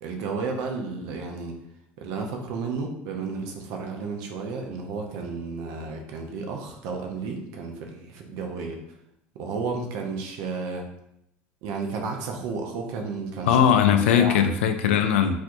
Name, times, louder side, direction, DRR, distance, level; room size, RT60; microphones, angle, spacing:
voice 1, 0.0-1.5 2.0-8.8 9.3-10.9 11.6-13.7 14.1-14.5, right 4 dB, 70° right, 2 dB, 0.6 m, -32 dB
voice 2, 13.5-15.4, left 8 dB, 85° left, 7 dB, 0.3 m, -19 dB
4.3 x 2.2 x 2.5 m, 0.79 s
hypercardioid pair, 80°, 6 cm